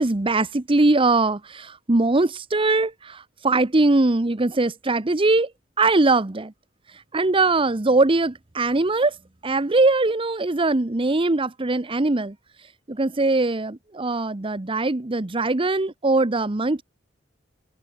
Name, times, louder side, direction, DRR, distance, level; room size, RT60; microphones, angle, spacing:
voice 1, 0.0-5.5 5.8-6.5 6.9-9.2 9.4-12.3 12.9-16.8, right 2 dB, 30° right, 0.9 m, -21 dB
head